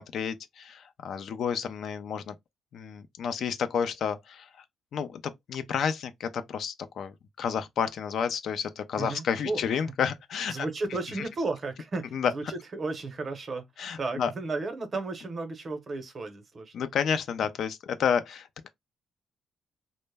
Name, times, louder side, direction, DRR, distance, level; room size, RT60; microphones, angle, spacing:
voice 1, 0.0-2.4 2.7-4.5 4.9-5.2 5.5-10.7 12.1-12.3 13.8-14.3 16.7-18.7, left 7 dB, 65° left, 0.4 m, -30 dB
voice 2, 9.0-9.9 10.5-13.7 14.0-16.7, right 3 dB, 40° right, 0.7 m, -34 dB
2.1 x 2.0 x 3.3 m
cardioid pair, 90°, 0 cm